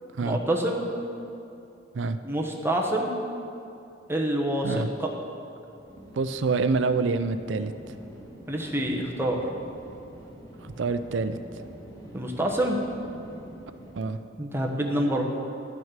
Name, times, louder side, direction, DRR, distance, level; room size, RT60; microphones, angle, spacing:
voice 1, 0.2-0.8 2.2-3.1 4.1-4.7 5.0-5.1 8.5-9.4 12.1-12.8 14.4-15.2, right 1 dB, 15° right, 0 dB, 1.1 m, -26 dB
sound 1, 5.8-13.9, equal, 20° left, 1.9 m, -46 dB
voice 2, 6.1-7.9 10.6-11.4 13.9-14.2, right 4 dB, 80° right, 11 dB, 0.5 m, -27 dB
12.0 x 6.3 x 7.3 m, 2.7 s
head